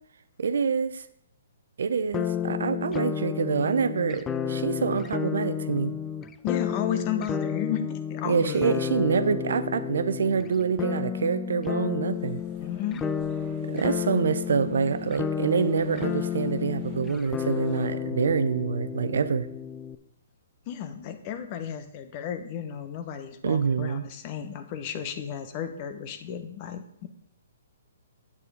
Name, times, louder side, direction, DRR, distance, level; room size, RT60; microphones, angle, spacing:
voice 1, 0.4-1.0 1.8-5.9 8.2-12.4 13.7-19.5 23.4-24.0, right 6 dB, 70° right, 13 dB, 0.6 m, -26 dB
sound 1, 2.1-20.0, left 8 dB, 20° left, 0.5 m, -31 dB
voice 2, 6.4-8.7 12.6-13.0 20.7-27.1, left 8 dB, 35° left, 9 dB, 1.1 m, -34 dB
sound 2, 12.1-17.9, right 5 dB, 25° right, 2.2 m, -51 dB
8.6 x 6.8 x 5.0 m, 0.73 s
hypercardioid pair, 130°, 0 cm